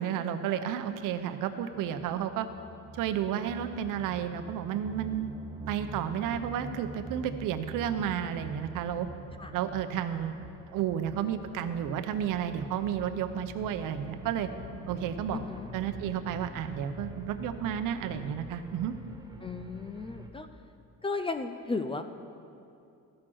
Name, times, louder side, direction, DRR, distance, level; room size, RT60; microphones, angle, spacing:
voice 1, 0.0-2.5 2.9-5.3 5.7-9.1 9.5-10.3 10.7-14.5 14.9-15.4 15.7-18.9, right 9 dB, 70° right, 9 dB, 0.8 m, -32 dB
sound 1, 1.1-20.3, right 1 dB, 10° right, 0.8 m, -45 dB
voice 2, 15.3-15.7 19.4-20.5 21.0-22.0, left 3 dB, 15° left, 8 dB, 0.3 m, -34 dB
14.0 x 6.3 x 6.1 m, 2.6 s
cardioid pair, 135°, 33 cm